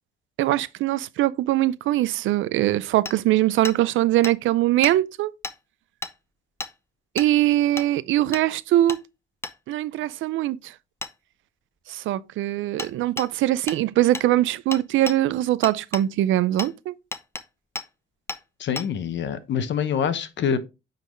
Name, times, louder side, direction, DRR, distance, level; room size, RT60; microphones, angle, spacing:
voice 1, 0.4-5.3 7.1-9.0 9.7-10.7 11.9-16.9, right 14 dB, 80° right, 0.5 m, -22 dB
Hammer, 3.1-3.2 3.6-3.8 4.2-4.3 4.8-5.0 5.4-5.6 6.0-6.1 6.6-6.7 7.2-7.3 7.8-7.9 8.3-8.5 8.9-9.0 9.4-9.6 11.0-11.1 12.8-12.9 13.2-13.3 13.7-13.8 14.1-14.3 14.7-15.2 15.6-16.1 16.6-16.7 17.1-17.4 17.8-17.9 18.3-18.4 18.8-18.9, left 2 dB, 15° left, 0.7 m, -33 dB
voice 2, 18.6-20.6, left 7 dB, 65° left, 1.0 m, -25 dB
9.0 x 4.0 x 3.2 m
cardioid pair, 90°, 20 cm